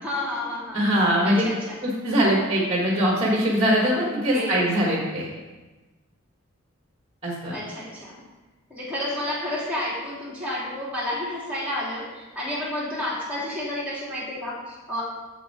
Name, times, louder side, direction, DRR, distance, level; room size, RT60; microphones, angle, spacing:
voice 1, 0.0-0.8 1.2-1.8 4.3-4.7 7.5-8.2 8.7-15.0, left 1 dB, 5° right, -8 dB, 2.8 m, -30 dB
voice 2, 0.7-1.4 1.8-5.3 7.2-7.5, equal, 30° right, -3 dB, 1.4 m, -22 dB
7.2 x 7.2 x 4.1 m, 1.2 s
head